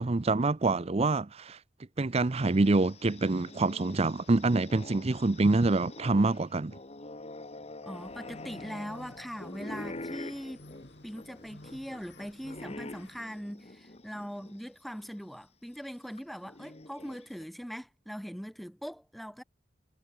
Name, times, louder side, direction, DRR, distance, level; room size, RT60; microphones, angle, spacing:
voice 1, 0.0-1.6 2.0-6.7, right 2 dB, 35° right, 0.6 m, -26 dB
sound 1, 2.3-14.6 15.0-15.1 16.2-17.4, left 2 dB, 35° left, 1.8 m, -46 dB
voice 2, 7.8-10.6 11.0-19.4, equal, ahead, 1.0 m, -41 dB
sound 2, 7.9-13.2, left 1 dB, 70° left, 2.9 m, -53 dB
head